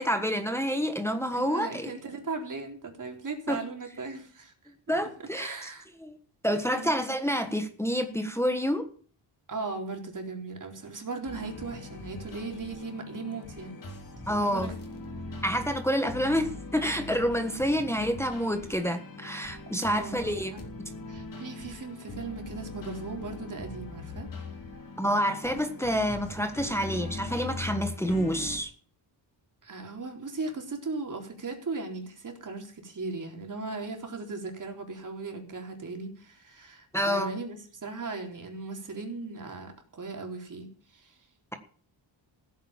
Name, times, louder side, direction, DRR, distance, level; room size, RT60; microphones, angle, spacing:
voice 1, 0.0-1.9 3.5-3.6 4.9-5.7 6.0-6.1 6.4-8.9 14.3-14.7 15.4-20.5 25.0-28.7 36.9-37.3, equal, 5° left, 1.4 m, -28 dB
voice 2, 1.3-4.7 5.2-5.8 6.7-7.0 9.5-13.8 14.3-14.7 19.8-20.2 21.1-24.3 29.6-41.2, right 3 dB, 40° right, 3.9 m, -38 dB
sound 1, 11.2-28.6, left 3 dB, 45° left, 3.5 m, -41 dB
16.0 x 9.3 x 7.4 m
wide cardioid pair, 145°, 46 cm